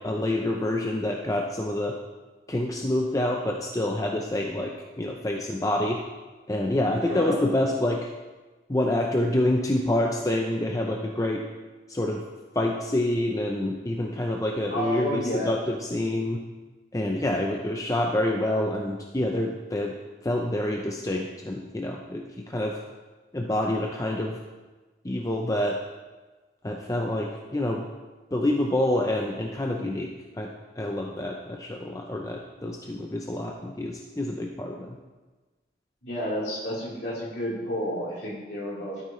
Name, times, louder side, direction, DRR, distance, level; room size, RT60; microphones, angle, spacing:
voice 1, 0.0-1.9 2.5-6.0 6.5-8.1 8.7-11.4 11.9-12.2 12.5-16.4 16.9-19.9 20.2-22.8 23.3-24.4 25.0-25.8 26.6-27.9 28.3-30.5 30.8-35.0, left 1 dB, 20° left, 1 dB, 0.6 m, -27 dB
voice 2, 14.7-15.6 36.0-39.0, equal, 60° left, -6 dB, 3.8 m, -30 dB
12.5 x 9.3 x 3.2 m, 1.3 s
head